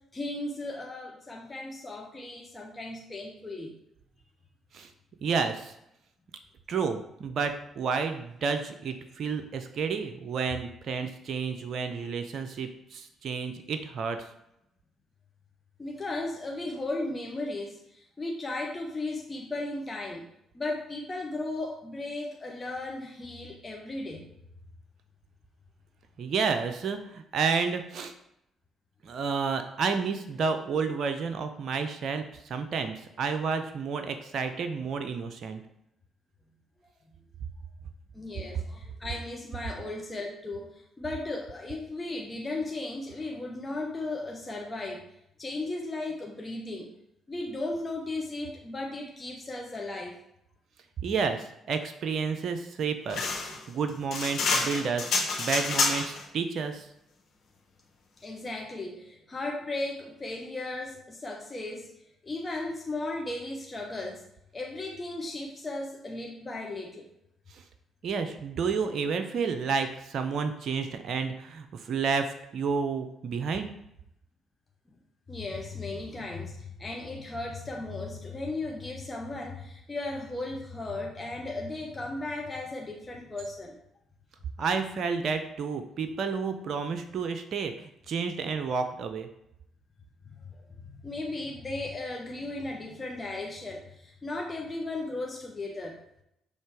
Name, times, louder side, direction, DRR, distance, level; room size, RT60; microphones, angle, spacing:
voice 1, 0.1-3.7 11.6-11.7 12.0-12.1 15.8-20.3 20.5-24.3 38.1-40.7 41.0-45.0 45.4-46.9 47.3-50.2 58.2-61.9 62.2-64.2 64.5-67.1 75.3-83.8 90.3-90.4 91.0-96.0, left 2 dB, 30° left, 0 dB, 1.0 m, -36 dB
voice 2, 5.2-5.7 6.7-14.2 26.2-28.1 29.0-35.6 51.0-55.1 55.4-56.9 67.5-67.6 68.0-73.7 84.6-89.3, right 5 dB, 60° right, 7 dB, 0.5 m, -30 dB
sound 1, 53.1-56.2, left 4 dB, 65° left, 1.6 m, -28 dB
6.4 x 3.4 x 4.6 m, 0.79 s
hypercardioid pair, 50°, 0 cm